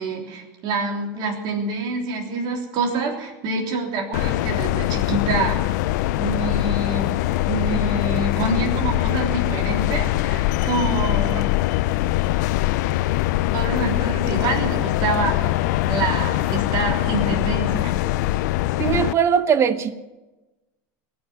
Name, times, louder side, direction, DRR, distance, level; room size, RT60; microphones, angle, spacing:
voice 1, 0.0-5.6 6.2-11.4 13.5-15.6 15.9-17.9, right 3 dB, 50° right, 1 dB, 3.4 m, -26 dB
sound 1, 4.1-19.1, left 16 dB, 85° left, 0.5 m, -22 dB
voice 2, 18.8-20.0, right 7 dB, 30° right, 13 dB, 0.9 m, -20 dB
19.0 x 7.1 x 9.7 m, 1.1 s
supercardioid pair, 140°, 9 cm